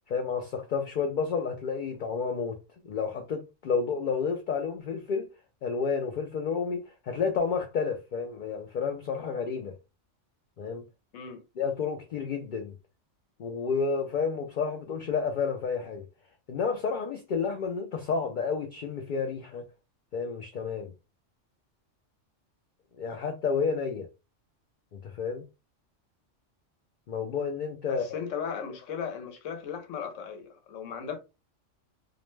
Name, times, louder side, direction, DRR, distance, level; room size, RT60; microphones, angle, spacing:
voice 1, 0.1-2.6 2.8-5.3 5.6-9.7 10.6-10.8 11.6-12.7 13.4-16.0 16.5-19.6 20.1-20.9 23.0-24.1 24.9-25.5 27.1-28.0, left 5 dB, 60° left, 0.5 m, -30 dB
voice 2, 11.1-11.4 27.9-31.2, left 7 dB, 85° left, 1.1 m, -36 dB
2.5 x 2.1 x 3.1 m
omnidirectional pair, 1.3 m